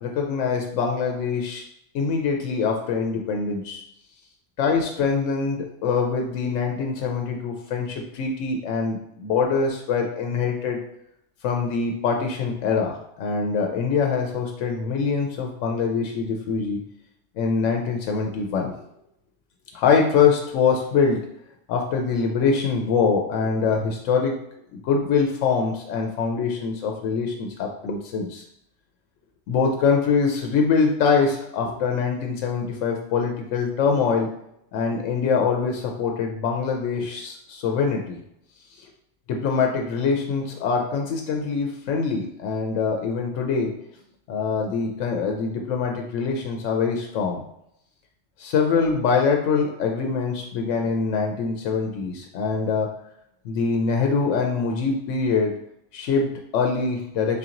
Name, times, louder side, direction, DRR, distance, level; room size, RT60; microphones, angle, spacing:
voice 1, 0.0-1.6 1.9-3.8 4.6-10.8 11.4-16.8 17.4-18.7 19.7-21.2 21.7-24.4 24.8-28.4 29.5-34.3 34.7-38.2 39.3-43.7 44.3-47.4 48.4-52.9 53.4-55.5 55.9-57.4, left 5 dB, 85° left, 2 dB, 0.9 m, -24 dB
3.6 x 2.9 x 3.7 m, 0.77 s
omnidirectional pair, 1.3 m